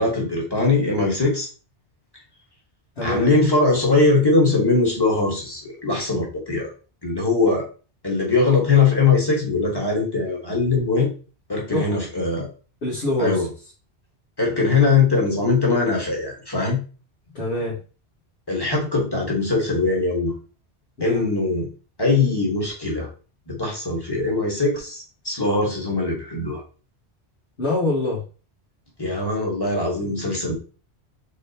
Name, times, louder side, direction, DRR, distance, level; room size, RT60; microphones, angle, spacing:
voice 1, 0.0-1.5 3.0-6.7 7.0-7.7 8.0-11.1 11.5-12.5 13.2-13.5 14.4-16.8 18.5-20.3 21.0-21.7 22.0-23.1 23.5-26.6 29.0-30.5, left 3 dB, 20° left, -2 dB, 1.5 m, -21 dB
voice 2, 3.0-3.3 11.7-12.0 12.8-13.5 17.3-17.8 21.0-21.3 27.6-28.2, left 2 dB, 80° left, -6 dB, 1.9 m, -24 dB
4.9 x 3.7 x 2.9 m, 0.36 s
omnidirectional pair, 1.1 m